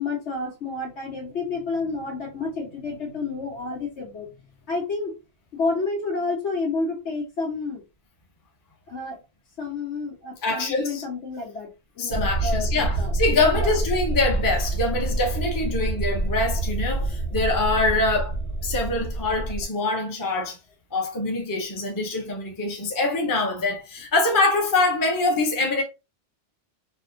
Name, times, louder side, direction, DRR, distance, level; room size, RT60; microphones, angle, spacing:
voice 1, 0.0-4.3 4.7-5.1 5.5-7.8 8.9-9.2 9.6-11.7 12.0-13.1 13.5-13.8, left 3 dB, 70° left, 1.5 m, -30 dB
voice 2, 10.4-11.0 12.0-18.3 18.6-20.6 20.9-25.8, left 2 dB, 20° left, 0.6 m, -24 dB
sound 1, 12.1-19.6, right 2 dB, 90° left, 1.4 m, -27 dB
3.5 x 2.2 x 2.6 m
omnidirectional pair, 1.2 m